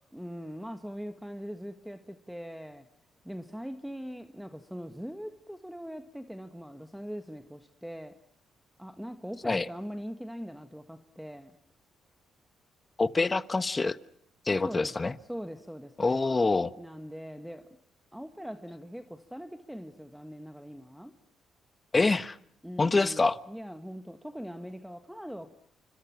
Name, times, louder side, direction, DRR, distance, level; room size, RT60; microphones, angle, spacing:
voice 1, 0.1-2.9 3.2-8.2 8.8-11.6 13.1-13.4 14.6-17.7 18.1-21.1 22.6-25.5, equal, ahead, 7 dB, 1.4 m, -42 dB
voice 2, 13.0-14.0 14.5-15.1 16.0-16.7 21.9-22.4 22.8-23.4, left 3 dB, 25° left, 14 dB, 1.0 m, -25 dB
29.5 x 25.5 x 5.8 m, 0.69 s
cardioid pair, 90°, 0 cm